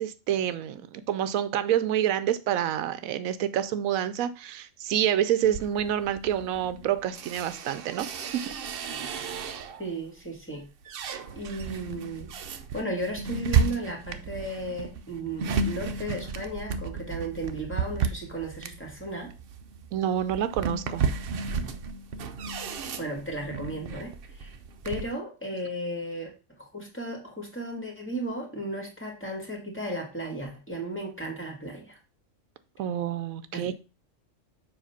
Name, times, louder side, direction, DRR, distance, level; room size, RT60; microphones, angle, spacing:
voice 1, 0.0-8.5 19.9-21.0 32.8-33.7, right 10 dB, 85° right, 12 dB, 1.0 m, -28 dB
sound 1, 5.4-9.9 10.4-25.1, right 5 dB, 55° right, 0.7 m, -33 dB
voice 2, 9.8-10.7 11.4-12.3 12.7-19.3 23.0-24.5 24.8-26.3 26.6-32.0 33.5-33.7, right 1 dB, 10° left, -1 dB, 1.9 m, -35 dB
7.3 x 2.9 x 5.7 m, 0.30 s
omnidirectional pair, 1.4 m